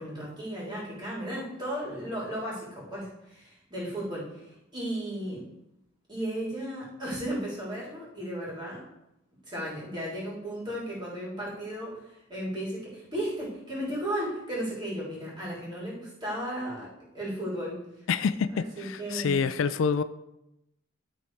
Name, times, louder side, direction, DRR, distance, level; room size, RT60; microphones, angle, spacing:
voice 1, 0.0-5.5 6.1-8.8 9.5-17.8 18.5-19.5, equal, 20° right, -6 dB, 3.4 m, -35 dB
voice 2, 18.1-20.0, left 6 dB, 70° left, 13 dB, 0.4 m, -27 dB
12.0 x 4.1 x 4.7 m, 0.87 s
head